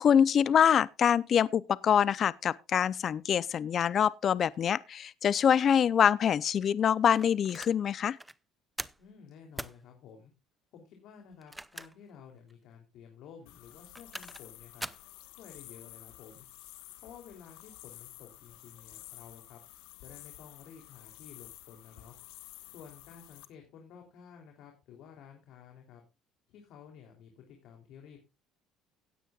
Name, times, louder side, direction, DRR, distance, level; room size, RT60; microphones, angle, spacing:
voice 1, 0.0-8.2, left 8 dB, 45° left, 0.6 m, -25 dB
sound 1, 7.2-7.8 8.2-8.4 8.8-9.1 9.6-9.8 11.3-12.1 12.5-12.6 13.7-14.5 14.8-15.1, right 1 dB, 5° right, 0.6 m, -41 dB
voice 2, 9.0-10.3 10.7-14.9 15.4-16.5 17.0-19.6 20.0-22.1 22.7-26.0 26.5-28.2, left 7 dB, 70° left, 3.2 m, -52 dB
sound 2, 13.5-23.5, left 16 dB, 90° left, 1.3 m, -51 dB
17.0 x 9.4 x 2.4 m
cardioid pair, 105°, 0 cm